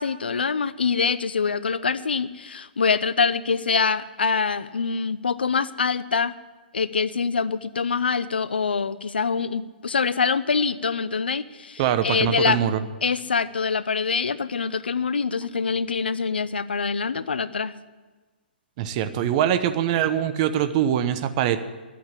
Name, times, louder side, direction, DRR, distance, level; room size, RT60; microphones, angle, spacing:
voice 1, 0.0-6.3 6.7-12.6 13.0-17.7, left 5 dB, 80° left, 16 dB, 0.6 m, -25 dB
voice 2, 11.8-12.8 18.8-21.6, right 10 dB, 40° right, 11 dB, 1.0 m, -23 dB
12.0 x 8.5 x 9.7 m, 1.3 s
hypercardioid pair, 125°, 5 cm